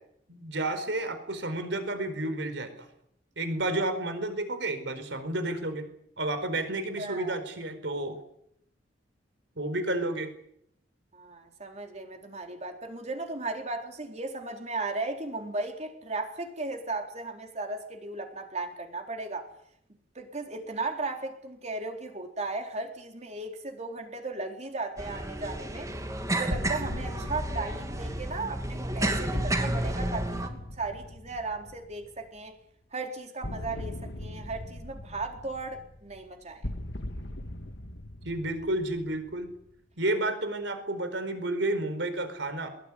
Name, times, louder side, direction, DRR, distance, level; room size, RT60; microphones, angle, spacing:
voice 1, 0.3-2.9 3.4-5.9 6.2-8.2 9.6-10.3 38.2-39.5 40.0-42.7, right 1 dB, 70° right, 4.7 m, -31 dB
voice 2, 7.0-7.4 11.1-19.5 20.1-25.9 26.3-32.5 32.9-36.7, right 3 dB, 40° right, 4.1 m, -36 dB
sound 1, 25.0-30.5, right 1 dB, 20° right, 2.7 m, -31 dB
sound 2, 26.5-32.2 33.4-39.7, left 1 dB, 70° left, 1.9 m, -40 dB
21.5 x 21.5 x 9.9 m
head